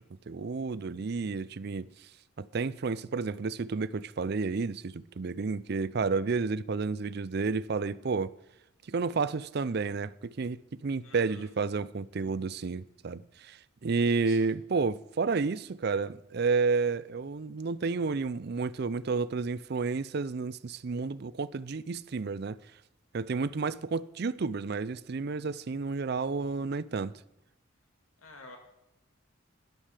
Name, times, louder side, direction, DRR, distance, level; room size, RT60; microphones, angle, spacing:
voice 1, 0.3-1.9 2.4-8.3 8.9-22.6 23.1-27.2, right 4 dB, 50° right, 0.5 m, -31 dB
voice 2, 11.0-11.5 14.1-14.5 28.2-28.6, left 3 dB, 85° left, 2.1 m, -50 dB
13.0 x 10.5 x 4.9 m
head